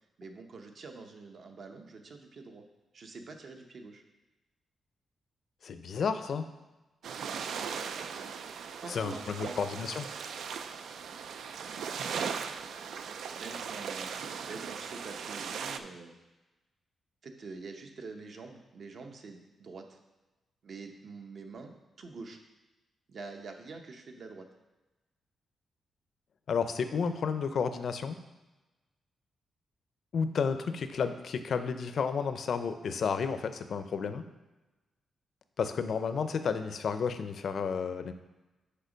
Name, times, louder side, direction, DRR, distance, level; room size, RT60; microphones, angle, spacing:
voice 1, 0.2-2.6 2.9-4.0 7.9-8.1 8.8-9.6 11.9-12.6 13.3-14.1 14.5-16.2 17.2-20.0 20.6-22.4 23.1-24.5, right 4 dB, 50° right, 4 dB, 0.8 m, -46 dB
voice 2, 5.6-6.5 8.9-10.1 26.5-28.2 30.1-34.2 35.6-38.1, left 6 dB, 55° left, 10 dB, 0.5 m, -31 dB
sound 1, 7.0-15.8, right 6 dB, 75° right, 0.4 m, -38 dB
6.7 x 5.2 x 5.1 m, 1.1 s
wide cardioid pair, 145°, 0 cm